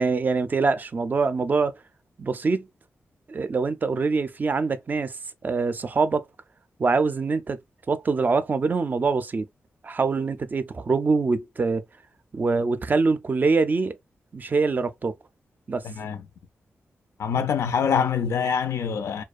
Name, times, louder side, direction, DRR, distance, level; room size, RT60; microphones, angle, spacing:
voice 1, 0.0-1.7 2.2-2.7 3.3-5.2 5.4-6.2 6.8-7.6 7.9-9.5 9.8-11.8 12.3-14.0 14.3-15.2 15.7-15.8, right 4 dB, 40° right, 0.3 m, -24 dB
voice 2, 15.8-16.2 17.2-19.2, left 7 dB, 85° left, 0.4 m, -25 dB
2.4 x 2.2 x 2.3 m
cardioid pair, 80°, 5 cm